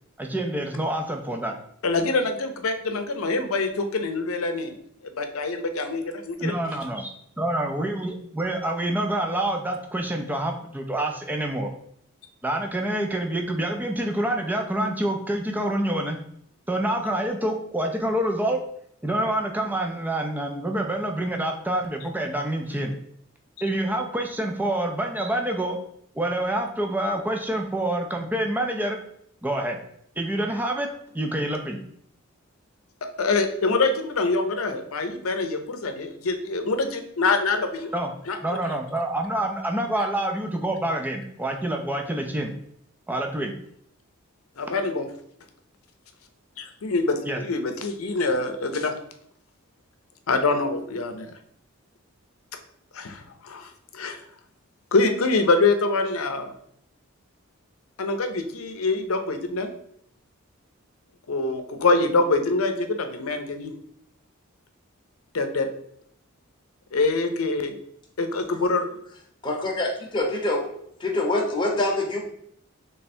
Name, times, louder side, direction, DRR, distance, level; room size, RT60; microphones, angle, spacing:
voice 1, 0.2-1.5 6.4-7.1 7.4-11.7 12.4-16.2 16.7-18.6 19.0-22.9 23.6-25.8 26.1-29.0 29.4-29.8 30.2-30.9 31.1-31.8 37.9-38.1 38.4-42.5 43.1-43.6 47.2-47.4, right 1 dB, 10° right, 3 dB, 0.4 m, -27 dB
voice 2, 1.8-4.8 5.2-6.5 33.0-38.0 38.3-38.4 44.6-45.1 46.6-49.0 50.3-51.3 52.9-54.2 54.9-56.5 58.0-59.7 61.3-63.7 65.3-65.7 66.9-67.8 68.2-68.9, left 3 dB, 80° left, 7 dB, 0.6 m, -25 dB
voice 3, 69.4-70.7 71.0-72.2, left 2 dB, 20° left, -1 dB, 0.9 m, -25 dB
3.4 x 3.3 x 4.2 m, 0.69 s
head